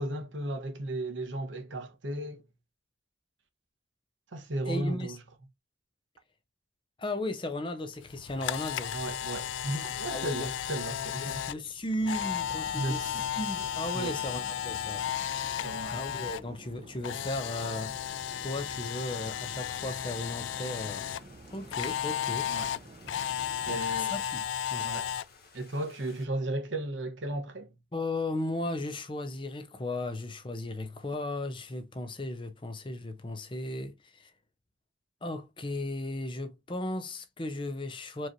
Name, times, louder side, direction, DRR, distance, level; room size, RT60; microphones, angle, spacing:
voice 1, 0.0-2.4 4.3-5.2 8.9-11.5 12.7-13.3 13.9-14.2 15.6-16.1 22.5-22.7 23.6-24.1 24.8-25.1 25.5-27.7, right 1 dB, 90° right, 1.1 m, -35 dB
voice 2, 4.6-5.1 7.0-9.0 10.1-10.5 11.2-15.0 15.9-17.9 18.4-21.1 21.5-22.5 23.7-24.4 24.7-24.9 27.9-34.3 35.2-38.3, left 1 dB, 25° left, 0.7 m, -36 dB
Camera, 8.1-16.4 16.7-21.2 21.7-25.2, left 10 dB, 80° left, 0.3 m, -34 dB
sound 1, 12.0-24.1, right 2 dB, 35° right, 0.6 m, -51 dB
sound 2, 18.6-26.3, left 4 dB, 55° left, 1.7 m, -57 dB
4.6 x 3.1 x 2.6 m
head